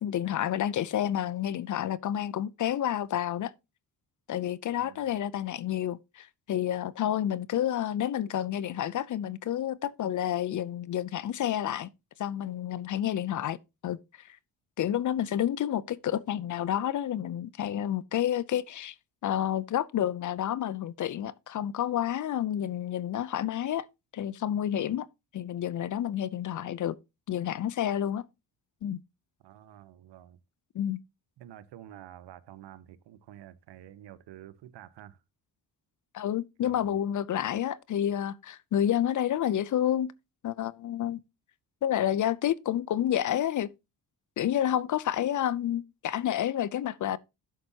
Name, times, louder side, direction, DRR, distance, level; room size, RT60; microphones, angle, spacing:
voice 1, 0.0-3.5 4.3-11.9 12.2-13.6 13.8-14.4 14.8-18.9 19.2-23.9 24.1-25.1 25.3-27.0 27.3-28.3 28.8-29.0 30.7-31.0 36.1-40.1 40.4-41.2 41.8-43.7 44.4-47.2, left 11 dB, 50° left, 0.5 m, -29 dB
voice 2, 4.7-5.1 29.4-30.4 31.4-35.2 36.6-37.0, right 12 dB, 80° right, 0.9 m, -49 dB
11.0 x 7.8 x 2.8 m
cardioid pair, 145°, 41 cm